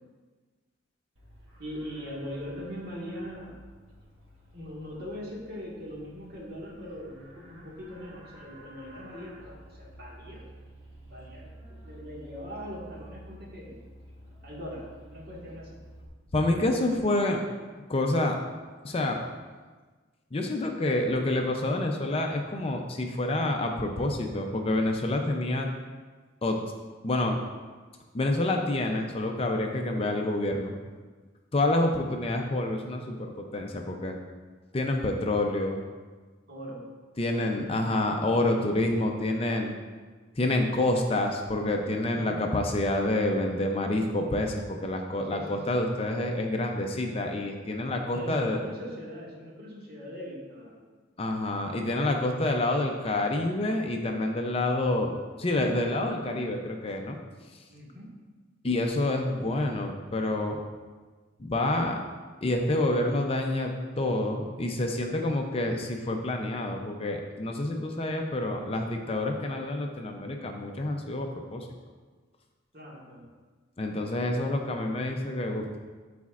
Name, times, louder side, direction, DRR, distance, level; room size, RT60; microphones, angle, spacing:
Livestock farm animals working animals, 1.2-16.1, right 1 dB, 80° right, 1.4 m, -51 dB
voice 1, 1.6-3.6 4.5-10.5 11.1-13.8 14.4-15.8 36.5-36.9 37.5-38.0 45.3-45.6 48.1-50.8 57.7-58.1 72.7-73.3, equal, 55° right, -4 dB, 1.7 m, -41 dB
voice 2, 16.3-17.4 17.9-18.4 18.8-19.2 20.3-25.7 26.4-26.6 27.0-27.4 28.1-30.7 31.5-34.2 34.7-35.8 37.2-39.7 40.3-48.6 51.2-55.1 55.4-57.2 57.5-57.6 58.6-60.6 61.4-62.0 62.4-71.7 73.8-75.8, left 1 dB, 30° left, 3 dB, 0.5 m, -28 dB
12.0 x 4.2 x 2.4 m, 1.4 s
head